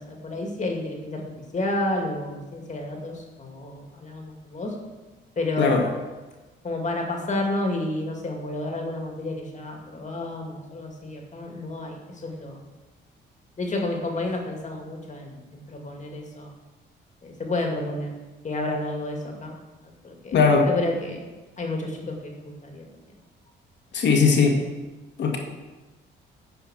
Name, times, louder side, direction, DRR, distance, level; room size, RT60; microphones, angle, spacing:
voice 1, 0.0-4.7 5.4-5.8 6.6-12.6 13.6-16.5 17.2-18.1 18.4-19.5 19.8-21.3 21.6-22.9, left 2 dB, 40° left, 1 dB, 2.3 m, -30 dB
voice 2, 20.3-20.7 23.9-24.6 25.2-25.4, left 5 dB, 65° left, 2 dB, 1.9 m, -19 dB
10.0 x 5.1 x 6.3 m, 1.2 s
cardioid pair, 90°, 20 cm